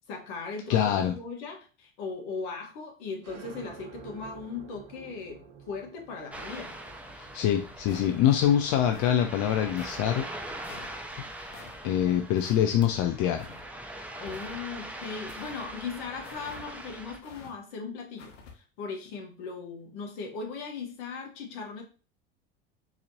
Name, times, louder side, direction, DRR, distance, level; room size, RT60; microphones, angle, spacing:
voice 1, 0.0-6.7 14.2-21.8, left 4 dB, 70° left, 2 dB, 1.4 m, -38 dB
voice 2, 0.7-1.1 7.2-10.3 11.4-13.5, left 10 dB, 55° left, 6 dB, 0.5 m, -25 dB
sound 1, 3.2-10.5, right 6 dB, 55° right, 1.0 m, -50 dB
Ocean, 6.3-17.2, right 1 dB, 5° right, 0.5 m, -42 dB
sound 2, 7.9-8.3 8.9-9.2 9.8-10.0 10.6-10.9 11.5-11.7 12.4-12.6 13.3-13.7 14.3-14.7 15.3-15.6 16.2-16.6 17.2-17.5 18.2-18.5, left 5 dB, 90° left, 0.9 m, -48 dB
4.0 x 3.0 x 2.8 m, 0.36 s
hypercardioid pair, 80°, 36 cm